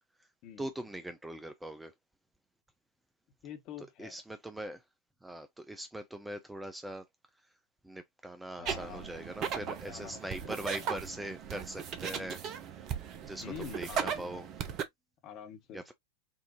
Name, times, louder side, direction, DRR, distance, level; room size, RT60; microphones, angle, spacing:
voice 1, 0.6-1.9 4.0-4.8 5.2-7.0 7.8-12.4 13.3-14.5 15.7-15.9, right 1 dB, 5° right, 0.5 m, -41 dB
voice 2, 3.4-4.2 8.6-9.1 9.6-10.9 12.1-12.4 13.4-14.5 15.2-15.8, left 9 dB, 40° left, 1.3 m, -47 dB
sound 1, 8.6-14.8, right 7 dB, 35° right, 0.7 m, -37 dB
5.5 x 2.7 x 2.9 m
figure-of-eight pair, 90°, 0 cm